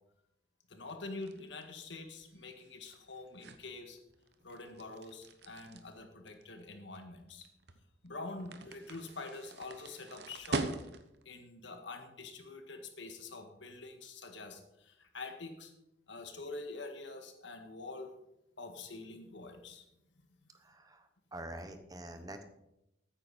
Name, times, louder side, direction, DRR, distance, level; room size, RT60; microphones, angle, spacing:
voice 1, 0.7-4.0 4.4-7.5 8.0-10.7 11.3-15.7 16.1-18.1 18.6-19.9, left 3 dB, 70° left, 5 dB, 1.8 m, -46 dB
sound 1, 0.9-11.3, right 3 dB, 60° right, 1.0 m, -44 dB
voice 2, 20.5-22.4, right 1 dB, 20° right, 8 dB, 0.9 m, -46 dB
14.0 x 9.0 x 4.3 m, 0.85 s
head